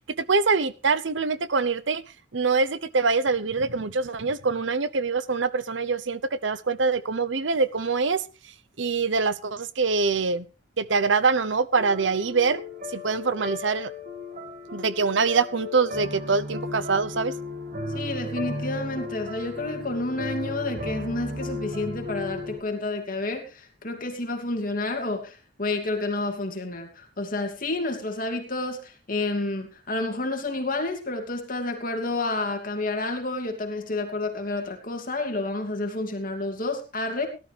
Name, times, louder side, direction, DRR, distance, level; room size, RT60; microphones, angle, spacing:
voice 1, 0.2-2.0 2.3-8.2 8.8-10.5 10.8-12.6 12.9-13.9 14.7-17.3, right 4 dB, 75° right, 15 dB, 0.9 m, -24 dB
sound 1, 11.8-22.6, left 2 dB, 45° right, 2.0 m, -35 dB
voice 2, 17.9-37.3, left 2 dB, 45° left, 4 dB, 2.7 m, -30 dB
17.5 x 12.0 x 3.4 m, 0.31 s
head